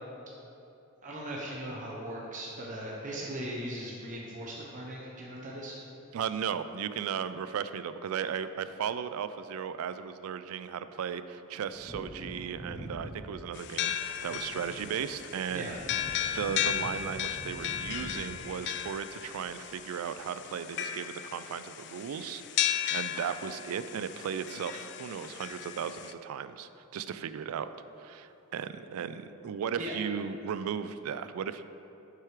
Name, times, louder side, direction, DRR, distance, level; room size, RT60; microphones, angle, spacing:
voice 1, 1.0-5.8 15.5-15.8 29.8-29.9, right 1 dB, 35° right, -4 dB, 0.8 m, -39 dB
voice 2, 6.1-15.8 16.2-27.7 28.0-31.6, right 7 dB, 75° right, 12 dB, 0.3 m, -36 dB
Wind / Thunder, 11.6-19.9 20.2-20.3, equal, 5° left, 0.8 m, -46 dB
sound 1, 13.5-26.1, left 11 dB, 55° left, 0.3 m, -35 dB
7.5 x 4.8 x 4.8 m, 2.9 s
head